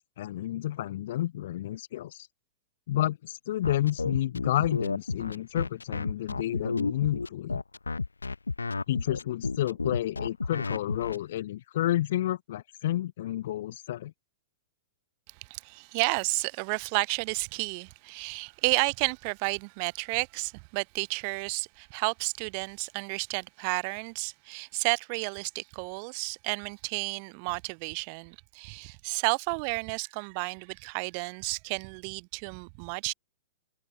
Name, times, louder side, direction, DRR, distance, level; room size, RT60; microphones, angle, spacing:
voice 1, 0.2-2.3 2.9-7.6 8.9-14.1, left 13 dB, 55° left, 7.4 m, -30 dB
sound 1, 3.6-11.2, left 4 dB, 85° left, 5.4 m, -31 dB
voice 2, 15.4-33.1, right 37 dB, 45° right, 4.4 m, -32 dB
figure-of-eight pair, 105°, 0 cm